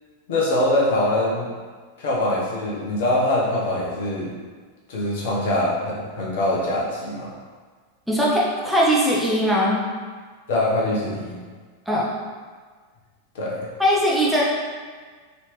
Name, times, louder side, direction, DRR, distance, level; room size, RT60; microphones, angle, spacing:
voice 1, 0.3-1.5 2.0-4.3 4.9-7.3 10.5-11.4 13.3-13.7, left 1 dB, 55° left, -5 dB, 0.9 m, -23 dB
voice 2, 8.1-9.8 11.9-12.1 13.8-14.4, equal, ahead, -6 dB, 0.7 m, -20 dB
3.2 x 2.9 x 3.2 m, 1.5 s
figure-of-eight pair, 90°, 0 cm